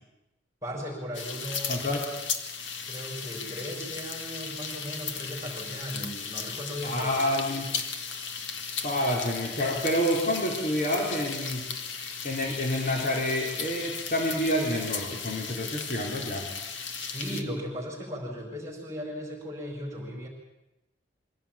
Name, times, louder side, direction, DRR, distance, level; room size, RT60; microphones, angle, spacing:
voice 1, 0.6-1.9 2.8-7.2 16.9-20.3, equal, 15° right, -1 dB, 4.7 m, -37 dB
sound 1, 1.1-17.4, left 6 dB, 85° left, 1.8 m, -36 dB
voice 2, 1.7-2.0 6.8-7.8 8.8-11.7 12.2-16.5, left 1 dB, 45° left, -2 dB, 4.1 m, -28 dB
23.5 x 16.5 x 8.9 m, 0.95 s
head